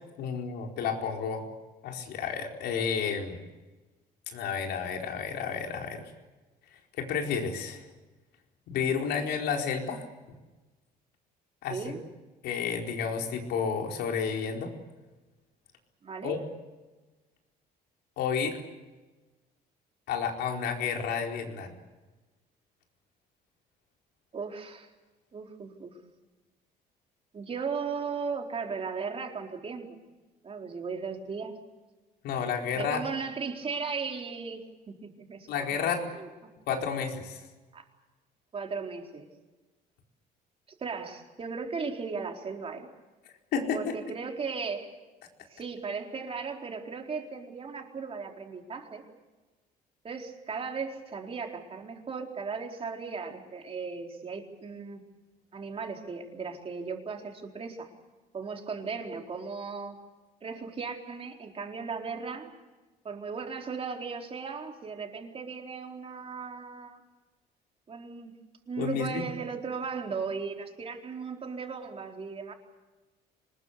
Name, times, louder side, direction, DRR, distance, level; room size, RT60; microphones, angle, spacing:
voice 1, 0.2-1.5 1.8-3.4 4.3-6.0 7.0-7.8 8.7-10.0 11.6-12.0 12.4-14.7 16.2-16.4 18.2-18.6 20.1-21.7 32.2-33.0 35.5-36.1 36.7-37.4 43.5-43.9 68.8-69.2, left 6 dB, 80° left, 2 dB, 4.6 m, -31 dB
voice 2, 16.0-16.3 24.3-24.9 25.3-26.0 27.3-30.0 30.4-31.6 32.7-34.6 34.9-36.3 37.7-37.8 38.5-39.3 40.8-42.9 43.7-44.9 45.5-49.0 50.0-55.0 55.5-57.9 58.3-60.0 60.4-62.5 63.0-67.0 67.9-68.4 68.7-72.5, right 5 dB, 35° right, 2 dB, 4.2 m, -36 dB
25.5 x 20.5 x 8.3 m, 1.2 s
cardioid pair, 110°, 17 cm